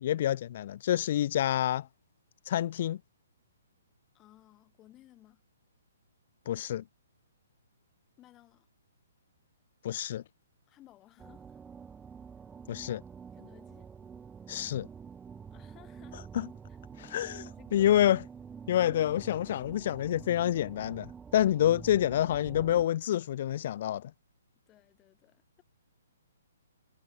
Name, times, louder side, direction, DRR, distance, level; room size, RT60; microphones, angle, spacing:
voice 1, 0.0-1.9 2.5-3.0 6.5-6.8 9.8-10.2 12.7-13.0 14.5-14.9 16.3-16.5 17.0-17.4 17.7-18.2 18.7-24.1, left 11 dB, 45° left, 0.6 m, -27 dB
voice 2, 4.1-5.4 8.2-8.7 10.7-11.6 13.3-13.9 15.5-16.2 16.7-16.8 17.2-18.0 24.7-25.6, left 14 dB, 20° left, 8.0 m, -58 dB
sound 1, 11.2-22.9, right 6 dB, 10° right, 0.7 m, -48 dB
figure-of-eight pair, 125°, 0 cm